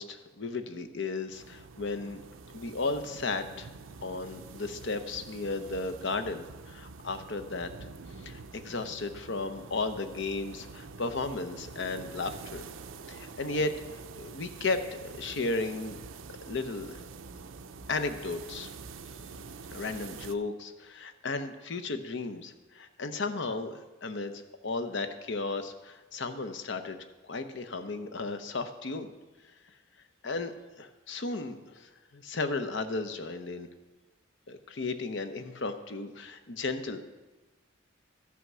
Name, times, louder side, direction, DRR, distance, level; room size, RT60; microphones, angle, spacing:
voice 1, 0.0-2.2 2.5-3.7 4.0-7.7 8.2-12.6 13.1-13.7 14.1-16.0 16.5-17.0 17.9-18.7 19.7-24.3 24.6-27.0 27.2-29.1 30.2-33.7 34.5-37.0, left 3 dB, 65° left, 9 dB, 0.9 m, -34 dB
sound 1, 1.3-20.4, right 4 dB, 90° right, 0.6 m, -46 dB
14.0 x 5.9 x 6.2 m, 1.2 s
head